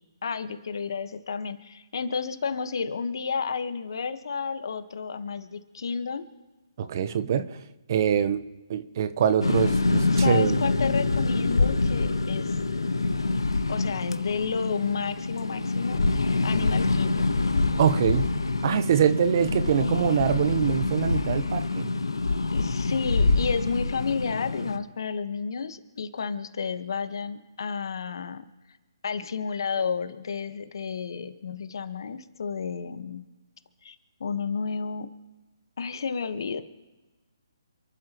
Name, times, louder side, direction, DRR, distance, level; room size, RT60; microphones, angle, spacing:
voice 1, 0.2-6.2 10.1-12.6 13.7-17.4 22.5-28.4 29.0-33.2 33.8-33.9 34.2-35.1 35.8-36.6, left 5 dB, 60° left, 9 dB, 1.4 m, -31 dB
voice 2, 6.8-7.6 7.9-8.4 8.7-10.6 17.8-18.3 18.6-21.9, right 8 dB, 45° right, 12 dB, 1.0 m, -24 dB
sound 1, 9.4-24.8, left 3 dB, 85° left, 1.4 m, -26 dB
28.5 x 11.5 x 3.1 m, 1.2 s
figure-of-eight pair, 145°, 3 cm